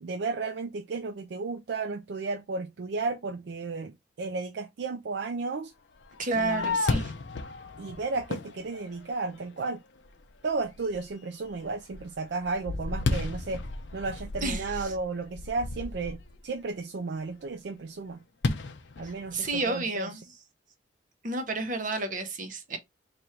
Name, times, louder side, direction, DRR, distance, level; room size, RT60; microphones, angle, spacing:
voice 1, 0.0-5.7 6.3-6.8 7.8-9.8 10.4-13.6 13.9-18.2 19.0-20.1, right 3 dB, 65° right, 0.4 m, -33 dB
Fireworks, 6.0-9.5 10.1-10.2 10.7-11.1 11.5-16.4 18.4-19.8, left 3 dB, 75° left, 0.6 m, -33 dB
voice 2, 6.2-7.1 14.4-14.9 19.0-20.2 21.2-22.8, right 2 dB, 45° right, 0.8 m, -31 dB
3.2 x 2.6 x 4.3 m
head